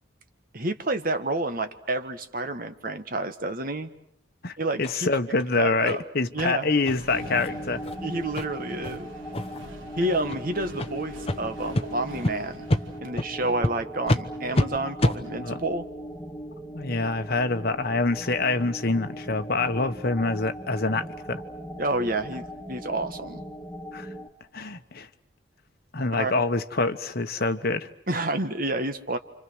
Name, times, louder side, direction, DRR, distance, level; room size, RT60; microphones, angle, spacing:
voice 1, 0.5-3.9 4.6-5.1 5.6-6.0 6.3-6.7 8.0-9.1 10.0-12.7 13.0-15.8 21.8-23.4 26.2-26.3 28.1-29.2, right 2 dB, 45° right, 1.6 m, -29 dB
voice 2, 4.4-7.8 15.4-15.6 16.7-21.4 23.9-24.1 24.5-25.1 25.9-27.9, left 3 dB, 50° left, 1.3 m, -26 dB
sound 1, 4.8-4.9 5.4-5.5 5.9-6.0 6.3-6.4 6.8-6.9 7.3-7.5 7.8-7.9 8.3-8.4 8.8-9.0 9.3-9.7 10.2-10.4 10.8-10.9 11.3-11.4 11.7-11.8 12.2-12.3 12.7-12.8 13.2-13.3 13.6-13.7 14.1-14.2 14.5-14.7 15.0-15.2, left 1 dB, 30° left, 1.1 m, -25 dB
Accelerating revving vroom, 6.8-13.0, equal, 85° right, 2.9 m, -45 dB
sound 2, 7.1-24.3, equal, 5° left, 2.1 m, -39 dB
30.0 x 26.5 x 6.3 m
head